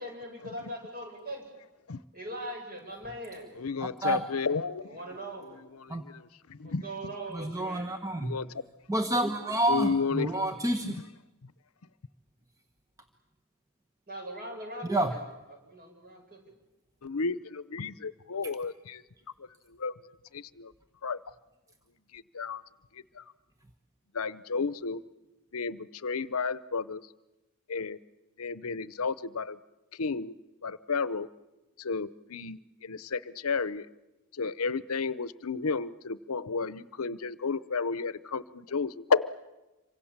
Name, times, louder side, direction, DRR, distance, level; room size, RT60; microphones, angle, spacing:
voice 1, 0.0-1.4 2.1-3.6 4.9-5.6 6.6-8.0 14.1-15.2 15.5-16.4, right 1 dB, 45° right, 3 dB, 7.5 m, -41 dB
voice 2, 3.6-5.0 5.8-6.8 8.2-8.5 9.7-10.3 10.8-10.9 17.0-19.0 19.7-19.9 20.3-20.7 21.0-21.2 22.1-22.6 22.9-23.2 24.1-25.0 25.5-27.0 27.7-28.0 28.4-29.6 30.0-30.3 30.6-31.3 31.8-33.9 34.3-39.3, left 4 dB, 75° left, 16 dB, 0.8 m, -32 dB
voice 3, 7.3-8.4 8.9-11.0 14.9-15.2, right 1 dB, 15° right, 6 dB, 1.2 m, -28 dB
27.0 x 25.0 x 7.4 m, 1.1 s
head